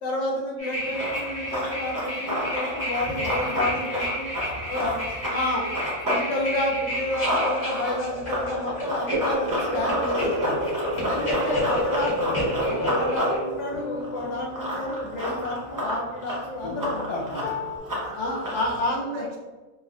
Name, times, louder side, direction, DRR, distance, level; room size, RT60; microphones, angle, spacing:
voice 1, 0.0-4.3 4.6-4.9 5.3-5.7 6.1-10.6 11.1-17.6 18.1-19.2, left 1 dB, 65° left, -1 dB, 0.9 m, -30 dB
sound 1, 0.6-13.4, equal, 25° left, 0.9 m, -30 dB
Run, 0.8-6.2 6.6-18.8, equal, 30° right, 0.4 m, -31 dB
voice 2, 4.5-6.0 6.3-6.5 10.3-10.8 11.3-11.7 14.7-14.9 18.0-19.4, right 1 dB, 75° right, -1 dB, 1.0 m, -42 dB
sound 2, 12.2-17.8, left 4 dB, 80° left, 0.4 m, -39 dB
3.3 x 2.1 x 2.4 m, 1.2 s
omnidirectional pair, 1.4 m